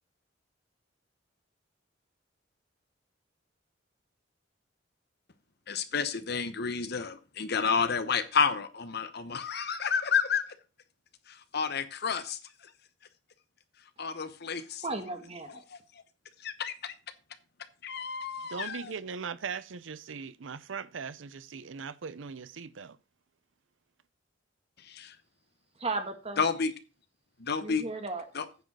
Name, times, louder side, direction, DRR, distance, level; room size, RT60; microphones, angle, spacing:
voice 1, 5.7-10.5 11.3-12.4 14.0-14.8 15.7-15.8 16.4-16.9 17.8-18.9 24.8-25.2 26.4-26.7 27.4-27.9 28.3-28.4, left 6 dB, 60° left, 1.0 m, -30 dB
voice 2, 14.8-15.6 25.8-26.4 27.6-28.2, right 3 dB, 30° right, 1.7 m, -35 dB
voice 3, 18.5-23.0, right 5 dB, 80° right, 0.6 m, -39 dB
9.2 x 5.2 x 6.1 m
head